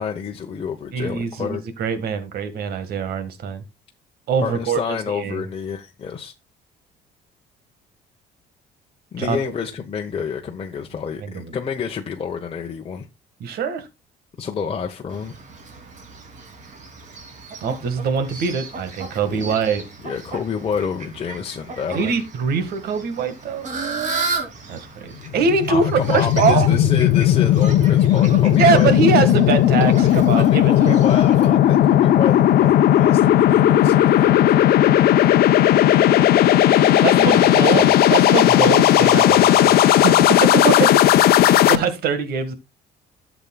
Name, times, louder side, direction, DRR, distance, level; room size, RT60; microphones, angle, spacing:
voice 1, 0.0-1.6 4.4-6.3 9.1-13.1 14.4-15.3 19.3-19.5 20.0-22.1 25.7-28.9 29.8-35.4 37.2-38.0, left 6 dB, 35° left, 1.0 m, -29 dB
voice 2, 0.9-3.6 4.3-4.8 5.1-5.4 9.2-9.4 11.2-11.5 13.4-13.9 17.6-19.8 21.9-23.7 24.7-26.7 28.6-31.0 37.0-40.9 41.3-42.5, right 5 dB, 65° right, 1.7 m, -23 dB
Fowl, 15.1-31.5, right 4 dB, 45° right, 3.0 m, -34 dB
sound 1, 25.2-41.7, left 12 dB, 65° left, 0.8 m, -15 dB
12.5 x 7.2 x 2.3 m
cardioid pair, 110°, 17 cm